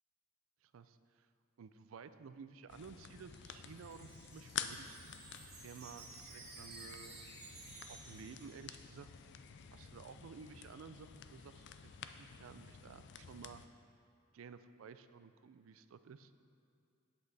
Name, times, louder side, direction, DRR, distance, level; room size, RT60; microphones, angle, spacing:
voice 1, 0.6-1.3 1.6-5.0 5.6-7.3 7.9-9.1 9.7-13.6 14.3-16.3, right 5 dB, 70° right, 12 dB, 0.4 m, -54 dB
sound 1, 2.7-13.7, left 8 dB, 55° left, 0.4 m, -50 dB
Wind chime, 3.2-9.2, right 4 dB, 50° right, 1.4 m, -55 dB
8.5 x 7.8 x 4.1 m, 2.5 s
head